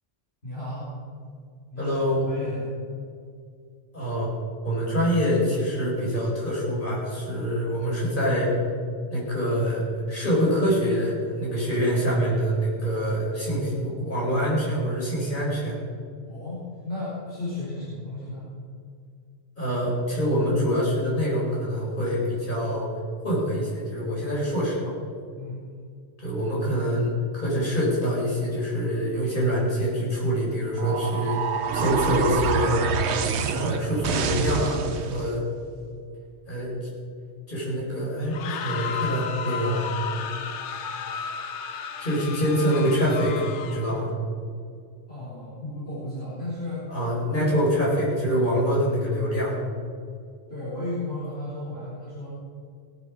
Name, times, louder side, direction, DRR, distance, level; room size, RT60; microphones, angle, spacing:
voice 1, 0.4-1.0 1.7-2.7 16.2-18.5 25.4-25.6 45.1-47.0 47.2-47.9 50.5-52.3, left 2 dB, 60° left, -9 dB, 4.0 m, -34 dB
voice 2, 1.8-2.3 3.9-4.3 4.6-8.5 9.1-15.8 19.6-22.9 23.2-24.9 26.2-32.9 33.4-35.4 36.5-36.7 37.5-39.9 42.0-44.1 46.9-49.6, equal, 45° left, -6 dB, 4.8 m, -25 dB
sound 1, 30.8-35.3, right 6 dB, 70° right, 1.0 m, -27 dB
sound 2, 38.2-44.0, left 7 dB, 80° left, 1.0 m, -33 dB
17.5 x 7.8 x 6.1 m, 2.2 s
omnidirectional pair, 1.2 m